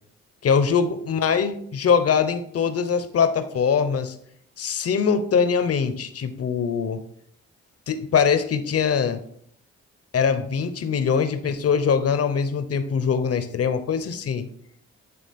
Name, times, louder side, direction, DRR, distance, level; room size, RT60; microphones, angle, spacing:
voice 1, 0.4-4.1 4.6-7.0 7.9-9.2 10.1-14.4, left 6 dB, 50° left, 10 dB, 0.8 m, -22 dB
8.6 x 3.5 x 3.6 m, 0.66 s
supercardioid pair, 55°, 31 cm